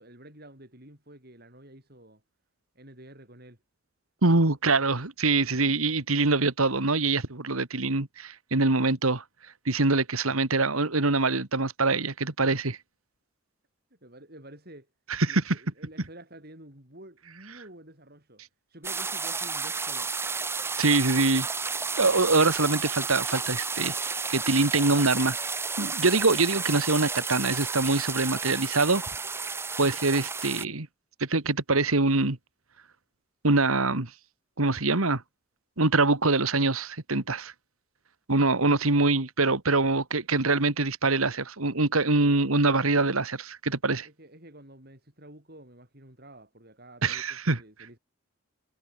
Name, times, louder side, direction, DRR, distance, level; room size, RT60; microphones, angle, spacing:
voice 1, 0.0-2.2 2.8-3.6 4.2-4.6 13.9-14.9 15.3-18.4 18.7-20.1 44.0-48.0, right 1 dB, 45° right, 7.1 m, -49 dB
voice 2, 4.2-9.2 9.7-12.8 15.1-15.6 20.8-21.5 22.0-25.4 25.8-29.1 29.8-30.9 31.2-32.4 33.4-34.1 34.6-35.2 35.8-37.5 38.3-44.1 47.0-47.6, right 3 dB, 90° right, 2.2 m, -24 dB
sound 1, 18.8-30.7, right 4 dB, 10° right, 0.5 m, -32 dB
head